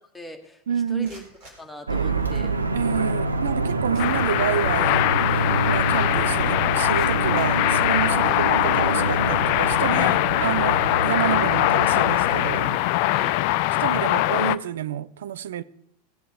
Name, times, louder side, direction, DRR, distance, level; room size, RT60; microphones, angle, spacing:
voice 1, 0.1-0.6 0.9-1.2 1.6-2.6 8.1-8.3 13.1-13.4, left 1 dB, 5° left, 1.5 m, -39 dB
voice 2, 0.7-1.1 2.7-5.1 5.7-12.7 13.8-15.6, right 9 dB, 65° right, 0.4 m, -29 dB
sound 1, 1.0-2.5 3.5-3.6 3.9-4.8 5.2-5.3 5.8-5.9 6.5-8.3 9.0-9.2 9.6-10.5, right 1 dB, 45° right, 3.8 m, -51 dB
sound 2, 1.9-12.8, right 3 dB, 80° right, 0.8 m, -27 dB
sound 3, 4.0-14.6, left 16 dB, 50° left, 0.3 m, -22 dB
17.0 x 7.8 x 4.8 m
figure-of-eight pair, 90°, 0 cm